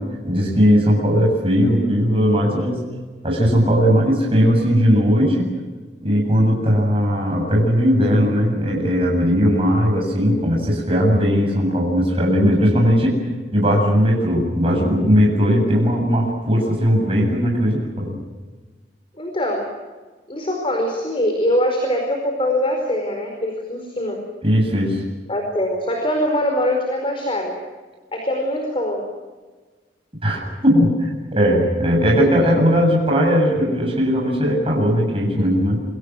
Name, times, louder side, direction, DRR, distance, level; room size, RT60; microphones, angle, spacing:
voice 1, 0.0-2.8 3.2-5.5 6.0-13.2 13.5-18.2 24.4-25.0 30.2-35.8, equal, 35° right, -1 dB, 7.9 m, -18 dB
voice 2, 19.2-19.8 20.3-24.3 25.3-27.6 28.1-29.1 35.4-35.6, left 1 dB, 30° left, 3 dB, 4.7 m, -23 dB
28.5 x 24.5 x 6.3 m, 1.3 s
head